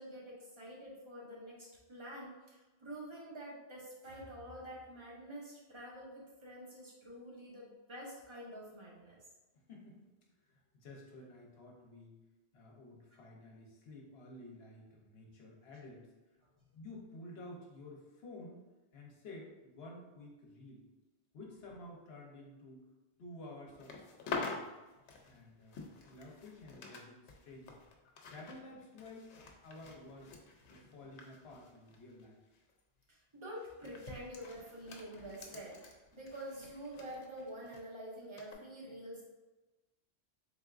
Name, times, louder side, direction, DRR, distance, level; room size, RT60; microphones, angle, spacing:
voice 1, 0.0-9.2 13.1-13.2 25.3-25.4 30.8-30.9 33.1-39.2, equal, 30° right, -5 dB, 1.0 m, -48 dB
voice 2, 9.5-12.1 12.5-16.1 16.7-18.6 18.9-20.8 21.3-22.9 23.2-24.7 25.2-27.8 28.3-29.3 29.6-30.3 30.7-32.4, left 2 dB, 65° left, -1 dB, 1.0 m, -52 dB
sound 1, 23.7-27.0 27.3-32.3 32.5-32.8 33.6-37.8 38.4-38.5, left 4 dB, 90° left, 0.9 m, -47 dB
3.8 x 3.5 x 2.4 m, 1.1 s
omnidirectional pair, 1.1 m